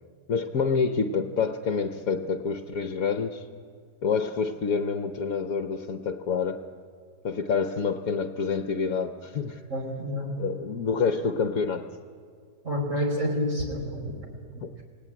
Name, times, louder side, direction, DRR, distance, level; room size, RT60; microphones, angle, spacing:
voice 1, 0.3-3.4 4.0-6.6 7.2-9.6 10.4-11.9 14.6-14.7, left 5 dB, 60° left, 7 dB, 1.4 m, -27 dB
voice 2, 9.7-10.3 12.6-14.2, equal, 45° right, 2 dB, 4.7 m, -28 dB
27.5 x 18.0 x 9.9 m, 2.1 s
omnidirectional pair, 1.8 m